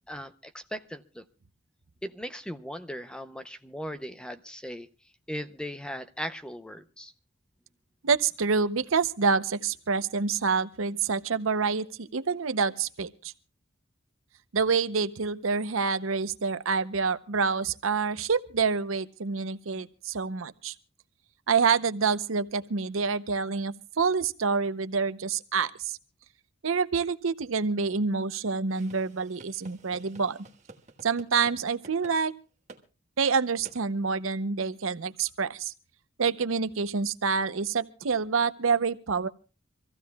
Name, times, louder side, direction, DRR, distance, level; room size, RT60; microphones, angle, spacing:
voice 1, 0.1-1.2 2.0-4.9 5.3-7.1, equal, 5° left, 0.6 m, -38 dB
voice 2, 8.0-13.3 14.5-20.7 21.5-26.0 26.6-30.4 31.0-32.3 33.2-35.7 36.2-39.3, right 5 dB, 75° right, 0.7 m, -27 dB
sound 1, 28.7-31.6 31.8-32.2 32.7-32.8 33.6-33.8, right 3 dB, 35° right, 1.4 m, -51 dB
25.5 x 15.0 x 2.3 m
head